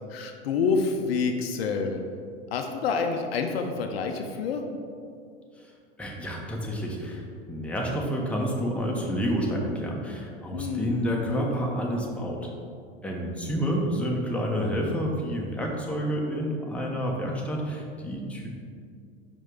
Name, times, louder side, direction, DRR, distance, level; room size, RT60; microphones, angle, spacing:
voice 1, 0.1-2.0 2.5-4.6 10.5-10.9, left 5 dB, 70° left, 5 dB, 0.6 m, -27 dB
voice 2, 5.6-12.5 13.0-18.5, equal, 5° left, -2 dB, 0.9 m, -29 dB
5.2 x 5.1 x 3.7 m, 2.3 s
figure-of-eight pair, 80°, 32 cm